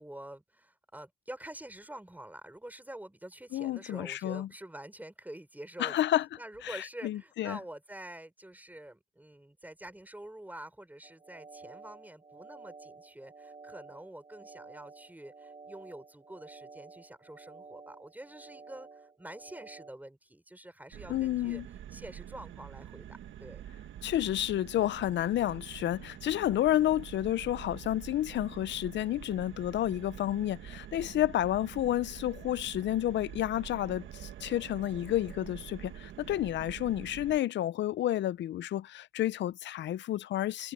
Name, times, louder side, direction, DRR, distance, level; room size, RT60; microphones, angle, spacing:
voice 1, 0.0-6.1 6.4-21.6 21.9-23.6, right 1 dB, 10° right, 5.7 m, -47 dB
voice 2, 3.5-4.5 5.8-6.3 6.6-7.6 21.1-21.6 24.0-40.7, left 13 dB, 65° left, 0.6 m, -30 dB
sound 1, 11.0-19.9, right 4 dB, 30° right, 3.7 m, -52 dB
sound 2, 20.9-37.4, right 11 dB, 70° right, 1.5 m, -46 dB
cardioid pair, 90°, 20 cm